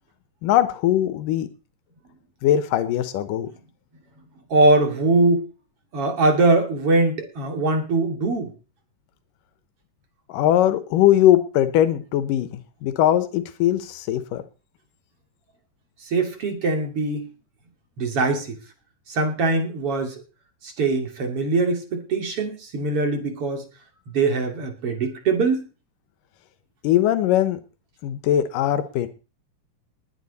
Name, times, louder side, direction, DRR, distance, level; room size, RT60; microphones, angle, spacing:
voice 1, 0.4-1.5 2.4-3.5 10.3-14.4 26.8-27.6 28.0-29.1, left 12 dB, 85° left, 12 dB, 2.6 m, -20 dB
voice 2, 4.5-5.4 5.9-8.5 16.1-17.3 18.0-18.6 19.1-20.1 20.6-23.6 24.1-25.6, right 3 dB, 45° right, 4 dB, 3.4 m, -22 dB
20.5 x 9.2 x 4.1 m, 0.33 s
omnidirectional pair, 3.8 m